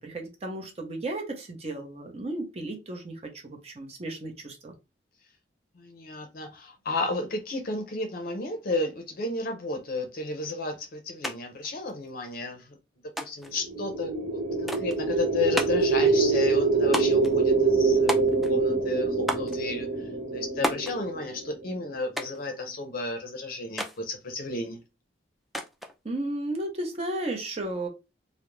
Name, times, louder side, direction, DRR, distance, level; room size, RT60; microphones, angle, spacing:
voice 1, 0.0-4.7 26.0-27.9, right 1 dB, 35° right, 2 dB, 0.7 m, -34 dB
voice 2, 5.8-12.8 13.2-14.1 14.6-18.1 18.5-19.9 20.3-24.8, left 2 dB, 50° left, 5 dB, 0.5 m, -33 dB
sound 1, 11.2-11.4 11.6-12.4 13.2-13.6 14.7-15.0 15.6-15.9 16.9-17.3 18.1-18.6 19.3-19.6 20.6-21.0 22.2-22.5 23.8-24.0 25.5-25.9, equal, ahead, 0.3 m, -32 dB
sound 2, 13.5-21.7, right 4 dB, 80° right, 0.9 m, -25 dB
2.4 x 2.0 x 3.0 m, 0.26 s
head